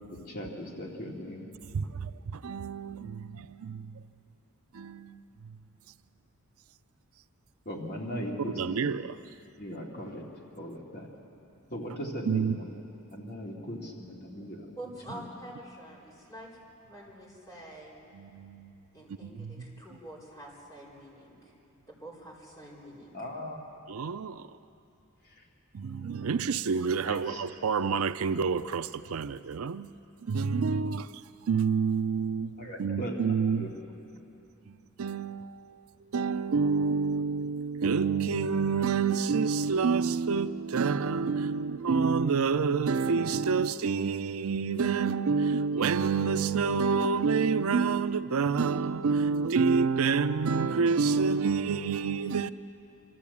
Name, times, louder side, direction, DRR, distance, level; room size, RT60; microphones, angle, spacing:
voice 1, 0.3-1.5 7.7-8.9 9.6-10.2 10.5-11.1 11.7-12.7 13.1-14.7 15.1-15.2 23.1-23.6 27.0-27.4 30.5-30.7 32.6-33.2 33.6-33.7, equal, 45° left, 2.5 m, -38 dB
voice 2, 1.7-4.0 4.7-5.6 8.5-9.2 12.3-12.6 18.1-18.7 19.2-19.5 23.9-24.5 25.7-29.9 30.2-31.1 31.5-33.7 34.7-35.9 36.1-52.5, right 5 dB, 75° right, 0.5 m, -28 dB
voice 3, 14.8-16.5 16.8-18.0 18.9-21.4 21.9-23.3, right 1 dB, 15° left, 4.8 m, -46 dB
25.5 x 13.5 x 8.5 m
head